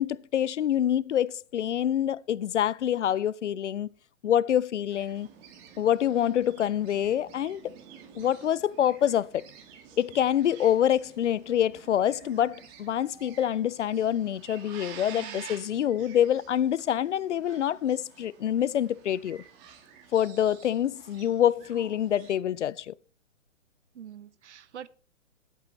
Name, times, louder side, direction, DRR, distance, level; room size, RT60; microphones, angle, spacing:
voice 1, 0.0-3.9 4.2-5.3 5.8-7.7 8.2-9.4 10.0-19.4 20.1-22.9, left 10 dB, 65° left, 0.5 m, -26 dB
sound 1, 4.9-22.3, right 7 dB, 25° right, 1.6 m, -50 dB
voice 2, 15.1-15.4 23.9-24.9, right 9 dB, 60° right, 0.8 m, -45 dB
19.5 x 8.2 x 3.1 m
figure-of-eight pair, 125°, 39 cm